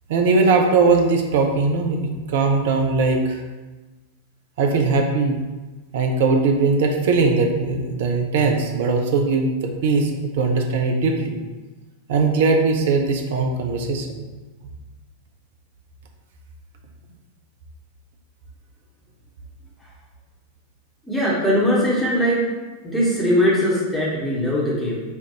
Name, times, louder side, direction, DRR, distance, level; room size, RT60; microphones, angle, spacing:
voice 1, 0.1-3.4 4.6-5.4 5.9-11.4 12.1-14.2, right 4 dB, 55° right, 3 dB, 0.5 m, -20 dB
voice 2, 21.1-22.4 22.8-25.0, equal, 5° left, -6 dB, 1.1 m, -20 dB
5.2 x 2.5 x 2.8 m, 1.2 s
figure-of-eight pair, 90°, 0 cm